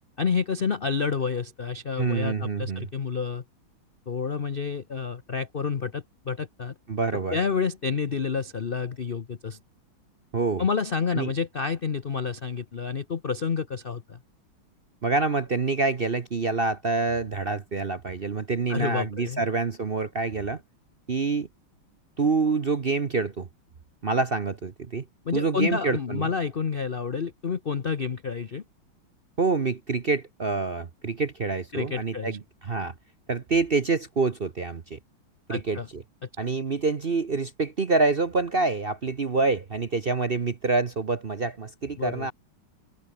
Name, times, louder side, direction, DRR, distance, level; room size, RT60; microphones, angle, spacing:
voice 1, 0.2-3.4 4.1-6.7 7.3-9.6 10.6-14.2 18.7-19.4 25.3-28.6 31.7-32.4 35.5-35.9 42.0-42.3, left 5 dB, 50° left, 0.6 m, -29 dB
voice 2, 2.0-2.9 6.9-7.4 10.3-10.6 11.1-11.3 15.0-20.6 21.1-21.5 22.2-23.5 24.0-25.0 25.3-26.3 29.4-32.9 33.3-35.0 35.5-36.0 36.4-42.3, right 4 dB, 40° right, 0.9 m, -26 dB
omnidirectional pair, 2.2 m